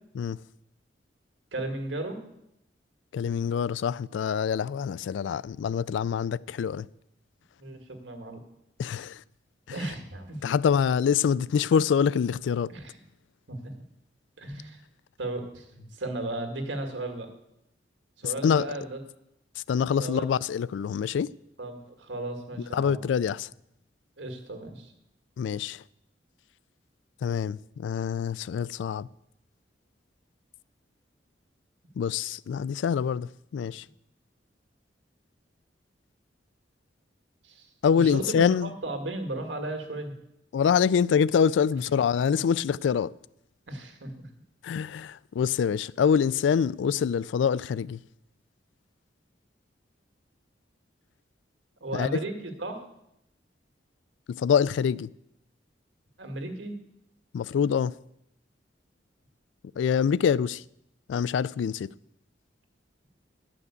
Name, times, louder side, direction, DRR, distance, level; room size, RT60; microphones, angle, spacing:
voice 1, 1.5-2.2 7.6-8.4 9.7-10.4 12.7-13.0 13.5-13.7 14.4-14.8 15.2-17.3 18.2-19.0 20.0-20.3 21.6-23.0 24.2-24.9 37.4-40.1 42.3-42.4 43.7-44.3 51.8-52.8 56.2-56.7, right 2 dB, 85° right, 1.9 m, -35 dB
voice 2, 3.1-6.9 8.8-9.2 9.7-9.8 10.4-12.7 18.4-18.7 19.7-21.3 22.7-23.5 25.4-25.8 27.2-29.1 32.0-33.8 37.8-38.7 40.5-43.1 44.6-48.0 51.9-52.1 54.3-55.1 57.3-57.9 59.8-60.6 61.1-61.9, left 7 dB, 80° left, 0.3 m, -25 dB
10.5 x 5.9 x 8.1 m
head